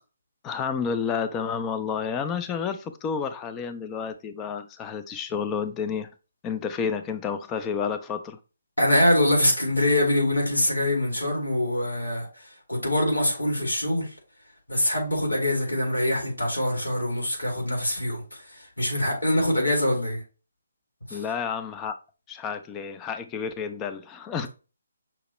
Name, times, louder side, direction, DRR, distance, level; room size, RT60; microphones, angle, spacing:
voice 1, 0.4-6.1 6.4-8.4 21.1-22.0 22.3-24.5, left 6 dB, 15° left, 0.4 m, -30 dB
voice 2, 8.8-14.1 14.7-20.2 21.1-21.2 24.4-24.5, left 1 dB, 85° left, 2.2 m, -24 dB
5.8 x 2.8 x 3.0 m
figure-of-eight pair, 140°, 0 cm